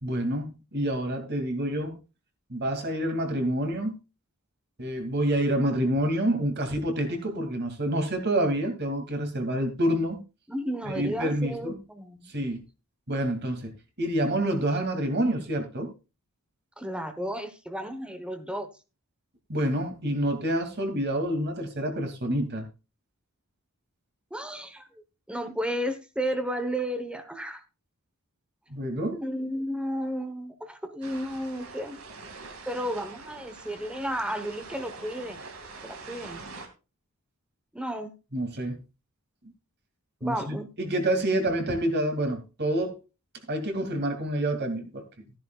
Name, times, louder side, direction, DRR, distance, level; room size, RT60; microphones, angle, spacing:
voice 1, 0.0-2.0 2.5-4.0 4.8-10.2 10.9-11.8 12.3-12.6 13.1-13.7 14.0-15.9 19.5-22.7 28.7-29.2 38.3-38.8 40.2-43.0 43.5-45.0, right 1 dB, 50° right, 2.6 m, -27 dB
voice 2, 10.5-12.3 16.8-18.7 24.3-27.6 29.1-32.0 32.7-35.4 35.8-36.4 37.7-38.1 40.2-40.7, equal, 5° right, 1.1 m, -33 dB
sound 1, 31.0-36.7, right 3 dB, 65° right, 2.3 m, -44 dB
14.5 x 10.5 x 2.4 m
head